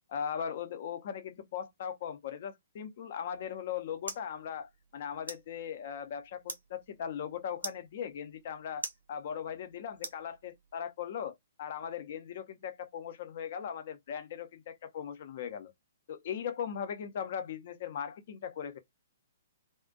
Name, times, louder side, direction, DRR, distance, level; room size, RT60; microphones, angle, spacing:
voice 1, 0.1-15.7 16.1-18.8, left 8 dB, 50° left, 0.6 m, -39 dB
sound 1, 3.3-10.8, right 3 dB, 75° right, 0.8 m, -47 dB
2.4 x 2.1 x 2.5 m
figure-of-eight pair, 120°, 0 cm